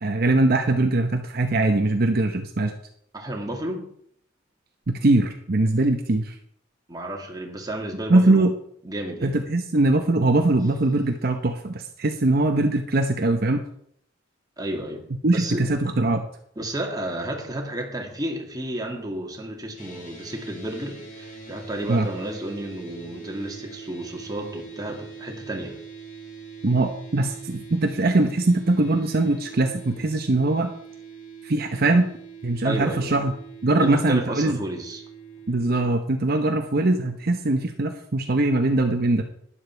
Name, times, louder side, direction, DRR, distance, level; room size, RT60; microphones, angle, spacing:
voice 1, 0.0-2.7 4.9-6.3 8.1-8.5 9.2-13.6 15.2-16.3 21.9-22.1 26.6-30.7 31.4-32.1 32.4-33.3 33.6-34.6 35.5-39.2, right 2 dB, 55° right, 5 dB, 0.8 m, -21 dB
voice 2, 3.1-3.9 6.9-8.4 8.8-9.4 14.6-15.0 15.3-15.6 16.6-25.8 32.6-33.1 33.8-35.0, right 1 dB, 20° right, 1 dB, 2.1 m, -32 dB
sound 1, 19.8-35.9, right 5 dB, 45° left, 3.0 m, -43 dB
12.0 x 10.0 x 4.5 m, 0.66 s
head